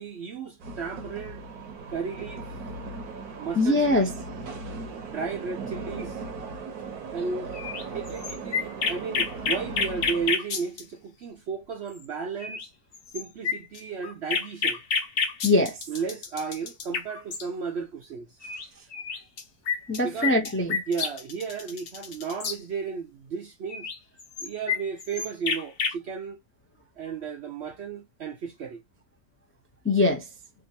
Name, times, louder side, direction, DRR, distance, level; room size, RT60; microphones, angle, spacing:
voice 1, 0.0-1.4 1.9-2.6 3.4-4.1 5.1-6.2 7.1-7.5 7.9-12.7 13.1-14.8 15.9-18.3 20.0-20.4 20.9-23.9 24.4-26.4 27.0-28.8, right 5 dB, 65° right, 0.7 m, -34 dB
sound 1, 0.6-10.3, right 4 dB, 80° right, 1.4 m, -38 dB
voice 2, 3.6-4.1 15.4-15.8 19.9-20.8 29.8-30.3, left 2 dB, 15° left, 0.4 m, -22 dB
sound 2, 7.5-10.8 12.0-12.1 12.4-12.7 12.9-17.4 18.4-18.7 18.9-22.6 23.7-25.9, left 5 dB, 50° left, 0.8 m, -29 dB
3.6 x 2.5 x 2.7 m
omnidirectional pair, 1.6 m